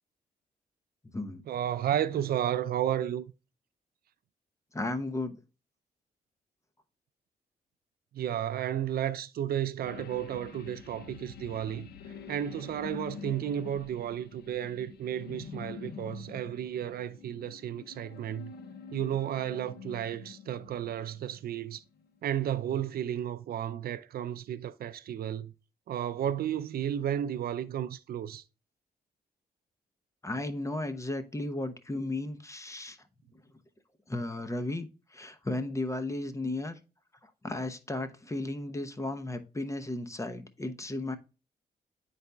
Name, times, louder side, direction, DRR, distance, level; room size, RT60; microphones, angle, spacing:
voice 1, 1.5-3.2 8.1-11.9 12.3-18.5 18.9-21.8 22.2-25.5 25.9-28.4, right 10 dB, 70° right, 0.5 m, -33 dB
voice 2, 4.7-5.4 30.2-33.0 34.1-36.8 37.2-41.2, left 2 dB, 20° left, 0.8 m, -35 dB
sound 1, 9.8-21.6 22.0-22.1, left 7 dB, 80° left, 0.7 m, -46 dB
10.0 x 4.1 x 2.2 m
cardioid pair, 80°, 16 cm